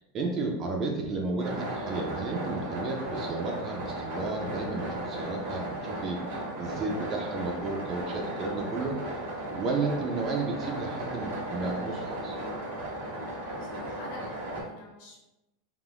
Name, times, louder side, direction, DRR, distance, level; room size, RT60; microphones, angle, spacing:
voice 1, 0.1-9.1 9.5-12.4, right 3 dB, 20° right, 1 dB, 0.3 m, -33 dB
sound 1, 1.4-14.6, right 1 dB, 80° right, 1.2 m, -36 dB
voice 2, 13.6-15.2, left 2 dB, 50° left, -2 dB, 0.8 m, -46 dB
3.4 x 2.3 x 2.3 m, 0.96 s
supercardioid pair, 180°, 0 cm